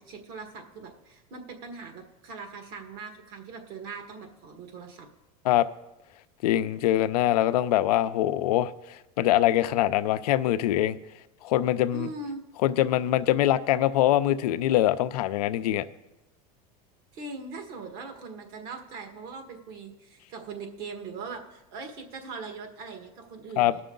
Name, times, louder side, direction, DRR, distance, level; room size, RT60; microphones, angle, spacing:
voice 1, 0.0-5.1 11.9-12.4 17.1-23.8, right 4 dB, 55° right, 1.6 m, -41 dB
voice 2, 6.4-8.7 9.2-11.0 11.4-12.1 12.6-15.9 23.6-23.7, left 13 dB, 90° left, 0.5 m, -23 dB
18.5 x 6.2 x 3.8 m
supercardioid pair, 125°, 19 cm